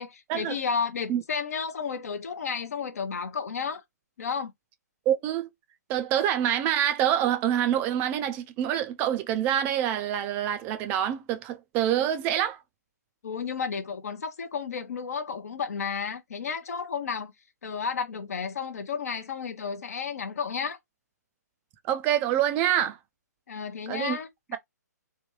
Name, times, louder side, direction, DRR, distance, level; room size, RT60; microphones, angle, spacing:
voice 1, 0.0-3.8 4.2-4.5 13.2-17.3 17.6-20.8 23.5-24.6, left 6 dB, 60° left, 0.6 m, -32 dB
voice 2, 5.1-5.5 5.9-12.6 21.9-23.0 23.9-24.2, right 10 dB, 20° right, 0.3 m, -26 dB
3.2 x 2.2 x 3.0 m
figure-of-eight pair, 130°, 9 cm